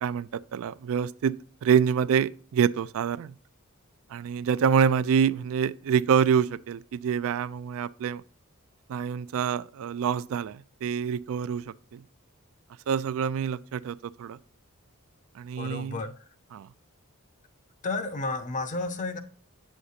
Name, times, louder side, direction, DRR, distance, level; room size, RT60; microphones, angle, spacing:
voice 1, 0.0-1.3 1.6-3.3 4.1-8.2 8.9-12.0 12.9-14.4 15.4-16.0 16.5-16.7, right 7 dB, 65° right, 0.3 m, -26 dB
voice 2, 15.6-16.1 17.8-19.2, left 3 dB, 35° left, 0.5 m, -31 dB
8.6 x 6.4 x 2.7 m
head